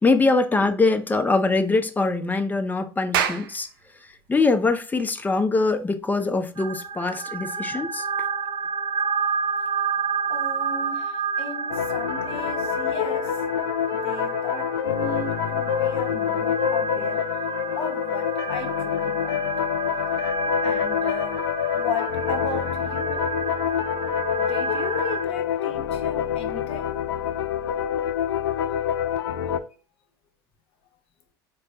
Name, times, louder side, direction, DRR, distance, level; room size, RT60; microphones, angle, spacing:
voice 1, 0.0-3.7 4.3-8.1, left 3 dB, 15° left, 0.6 m, -23 dB
Clapping, 2.9-7.8, right 9 dB, 70° right, 0.5 m, -32 dB
sound 1, 6.6-25.2, right 5 dB, 30° right, 1.0 m, -30 dB
voice 2, 10.3-13.4 14.0-17.5 17.7-19.5 20.6-21.4 21.7-23.2 24.4-26.9, left 4 dB, 50° left, 1.0 m, -35 dB
sound 2, 11.7-29.6, left 9 dB, 80° left, 0.4 m, -26 dB
4.4 x 2.2 x 3.7 m
hypercardioid pair, 75°, 12 cm